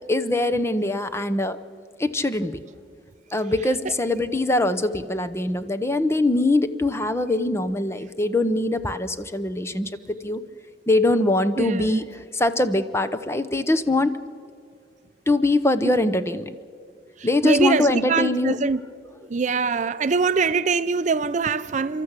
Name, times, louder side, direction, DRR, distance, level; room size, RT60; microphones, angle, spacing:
voice 1, 0.1-1.6 2.0-2.6 3.3-10.4 10.9-14.2 15.3-16.5 17.2-18.6, left 2 dB, 15° left, 0.8 m, -22 dB
voice 2, 11.6-12.0 17.2-18.8 19.3-22.0, right 5 dB, 45° right, 0.5 m, -23 dB
30.0 x 13.0 x 8.2 m
head